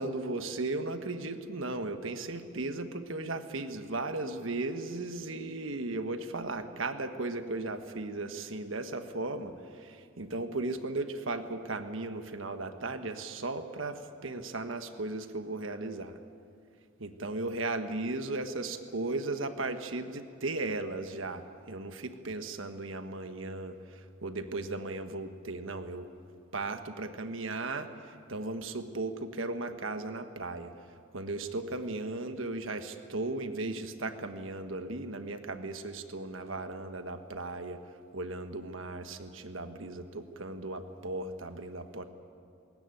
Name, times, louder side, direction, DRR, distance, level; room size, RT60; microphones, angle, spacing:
voice 1, 0.0-16.2 17.0-26.1 26.5-30.7 31.1-37.8 38.1-42.0, right 2 dB, 80° right, 8 dB, 1.3 m, -36 dB
21.0 x 18.0 x 9.1 m, 2.4 s
head